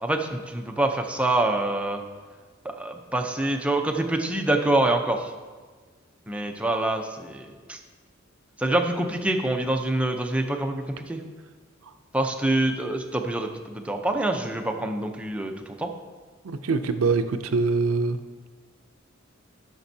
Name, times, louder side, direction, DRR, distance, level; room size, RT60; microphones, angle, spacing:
voice 1, 0.0-2.0 2.6-5.3 6.3-7.8 8.6-11.2 12.1-15.9, right 1 dB, 5° right, 3 dB, 0.6 m, -26 dB
voice 2, 16.4-18.2, right 4 dB, 90° right, 9 dB, 0.5 m, -24 dB
13.0 x 6.1 x 2.7 m, 1.4 s
head